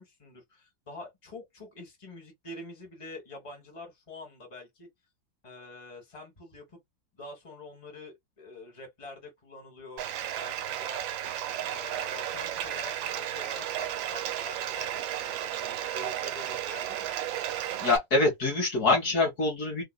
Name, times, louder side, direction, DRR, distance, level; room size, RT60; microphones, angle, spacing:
voice 1, 0.0-4.9 5.4-6.8 7.1-10.0 10.4-11.0 11.7-17.1, left 2 dB, 15° left, 1.6 m, -46 dB
Bathtub (filling or washing), 10.0-18.0, right 11 dB, 85° right, 1.4 m, -33 dB
voice 2, 17.8-19.8, left 3 dB, 55° left, 1.8 m, -25 dB
3.8 x 2.7 x 2.2 m
omnidirectional pair, 2.1 m